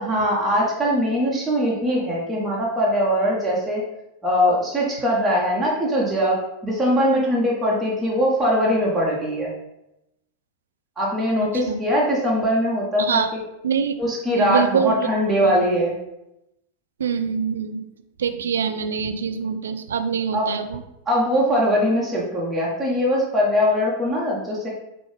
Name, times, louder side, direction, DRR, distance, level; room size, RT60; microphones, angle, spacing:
voice 1, 0.0-3.9 4.2-9.5 11.0-13.2 14.0-16.0 20.3-20.5 21.1-24.7, equal, 10° right, -4 dB, 0.9 m, -21 dB
voice 2, 13.0-13.4 13.6-14.0 14.4-15.1 15.4-15.5 17.0-17.8 18.2-20.8, right 7 dB, 65° right, 8 dB, 0.3 m, -24 dB
5.3 x 2.1 x 3.1 m, 0.88 s
figure-of-eight pair, 90°, 0 cm